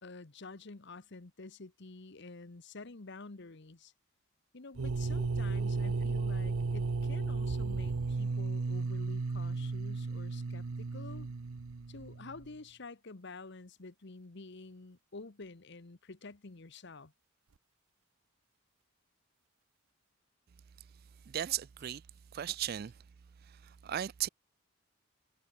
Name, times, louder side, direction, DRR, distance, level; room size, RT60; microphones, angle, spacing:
voice 1, 0.0-3.9 4.5-11.3 11.9-17.1, left 3 dB, 55° left, 1.1 m, -49 dB
sound 1, 4.7-12.5, right 3 dB, 90° right, 0.7 m, -34 dB
voice 2, 21.3-22.0 22.3-23.0 23.4-24.3, right 11 dB, 45° right, 0.3 m, -36 dB
head